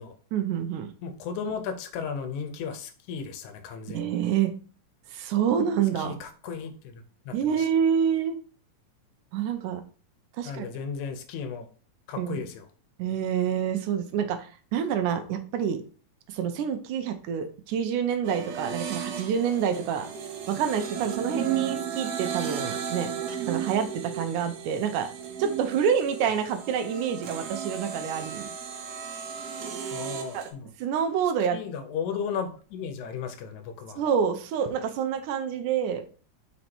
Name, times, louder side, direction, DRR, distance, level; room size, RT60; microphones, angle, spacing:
voice 1, 0.3-0.9 3.9-4.5 5.1-6.2 7.3-8.4 9.3-9.8 10.4-10.7 12.2-12.4 13.0-15.8 16.3-20.1 20.5-23.1 23.5-25.1 25.4-28.5 30.3-30.4 30.8-31.6 34.0-36.1, right 8 dB, 90° right, 8 dB, 2.2 m, -27 dB
voice 2, 1.0-4.2 6.0-7.7 10.5-11.7 12.1-12.7 29.9-30.7 31.5-34.0, left 6 dB, 80° left, 8 dB, 2.2 m, -35 dB
sound 1, 18.2-30.5, right 8 dB, 70° right, 1.9 m, -34 dB
5.1 x 4.5 x 4.3 m, 0.40 s
omnidirectional pair, 3.5 m